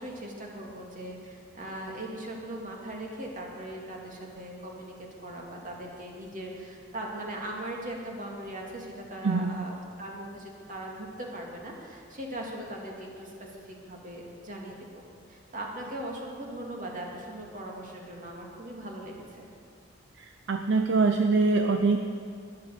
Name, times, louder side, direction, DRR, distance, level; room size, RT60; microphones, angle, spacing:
voice 1, 0.0-15.0 15.3-19.5, right 1 dB, 45° right, -1 dB, 2.3 m, -39 dB
voice 2, 9.2-9.6 20.2-22.0, right 3 dB, 65° right, 6 dB, 0.6 m, -24 dB
13.0 x 11.0 x 6.6 m, 2.5 s
head